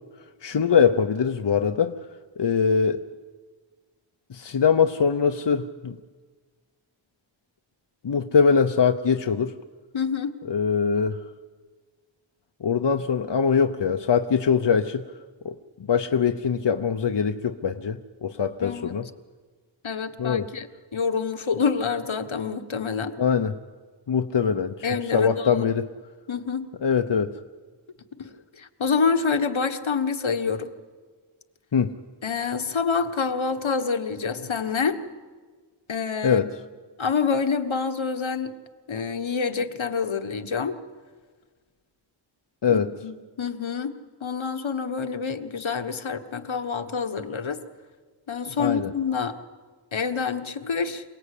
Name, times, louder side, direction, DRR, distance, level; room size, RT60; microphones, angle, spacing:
voice 1, 0.4-2.0 2.4-3.0 4.3-5.9 8.0-9.5 10.5-11.2 12.6-15.0 15.4-15.5 15.9-19.1 20.2-20.5 23.2-23.6 24.1-24.7 25.1-25.9 26.8-27.3 31.7-31.9 36.2-36.5 42.6-42.9 48.6-48.9, left 6 dB, 60° left, 7 dB, 0.9 m, -22 dB
voice 2, 9.9-10.4 18.6-18.9 19.8-20.7 20.9-23.2 24.8-25.7 26.3-26.7 28.2-30.7 32.2-35.0 35.9-36.5 37.0-38.5 38.9-40.8 42.7-43.9 44.2-47.6 48.3-49.4 49.9-51.0, left 5 dB, 75° left, 8 dB, 1.5 m, -27 dB
27.5 x 19.0 x 8.5 m, 1.5 s
wide cardioid pair, 80°, 47 cm